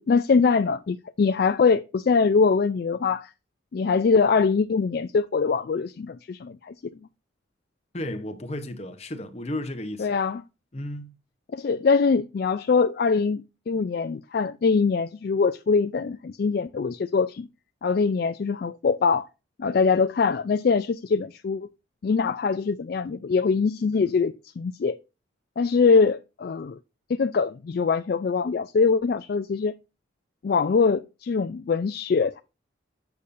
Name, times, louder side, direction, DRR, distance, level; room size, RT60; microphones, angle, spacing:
voice 1, 0.0-3.3 3.7-6.7 10.0-10.4 11.5-17.5 17.8-19.3 19.6-21.7 22.0-25.0 25.6-26.8 27.1-29.7 30.4-32.4, left 5 dB, 50° left, 0.3 m, -23 dB
voice 2, 7.9-10.1 10.7-11.1, left 1 dB, 30° left, 0.8 m, -33 dB
8.2 x 6.9 x 2.5 m
head